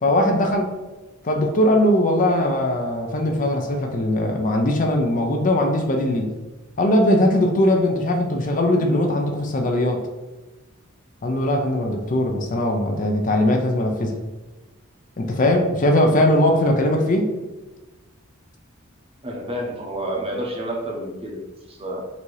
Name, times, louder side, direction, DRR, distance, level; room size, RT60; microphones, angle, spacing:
voice 1, 0.0-0.8 1.2-6.3 6.8-10.0 11.2-14.2 15.2-17.3, left 1 dB, 40° left, 3 dB, 0.5 m, -20 dB
voice 2, 19.2-22.1, right 1 dB, 25° right, 0 dB, 0.8 m, -30 dB
4.1 x 2.8 x 4.6 m, 1.1 s
head